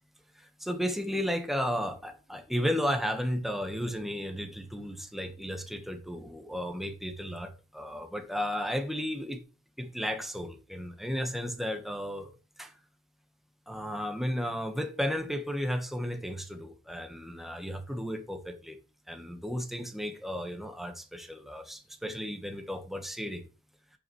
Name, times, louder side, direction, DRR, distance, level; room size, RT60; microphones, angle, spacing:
voice 1, 0.3-9.4 9.8-12.3 12.6-12.7 13.7-18.8 19.1-23.4, equal, ahead, 1.4 m, -34 dB
11.0 x 6.9 x 3.3 m
head